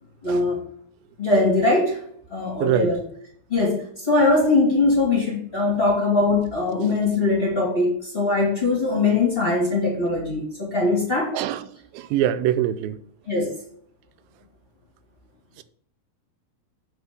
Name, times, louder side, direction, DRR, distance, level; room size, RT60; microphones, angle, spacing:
voice 1, 0.2-0.6 1.2-2.0 2.3-3.0 3.5-11.4 13.3-13.5, left 3 dB, 20° left, 2.0 m, -21 dB
voice 2, 2.6-3.0 11.3-11.7 11.9-13.0, right 11 dB, 90° right, 2.3 m, -23 dB
8.1 x 4.4 x 6.6 m
omnidirectional pair, 4.0 m